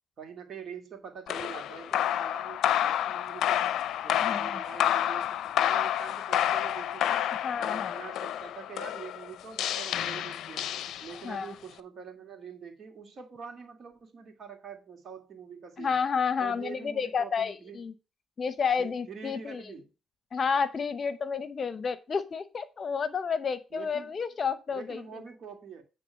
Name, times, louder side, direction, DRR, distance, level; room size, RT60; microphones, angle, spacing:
voice 1, 0.2-3.7 4.0-10.7 11.0-15.9 16.4-17.8 18.8-19.9 23.7-24.2 24.7-25.8, right 6 dB, 55° right, 2.5 m, -45 dB
sound 1, 1.3-11.4, left 11 dB, 75° left, 0.5 m, -29 dB
voice 2, 4.2-4.6 7.4-7.9 11.2-11.5 15.8-17.9 18.4-19.6 20.3-25.0, left 6 dB, 45° left, 0.9 m, -30 dB
9.1 x 3.7 x 6.5 m
cardioid pair, 90°, 0 cm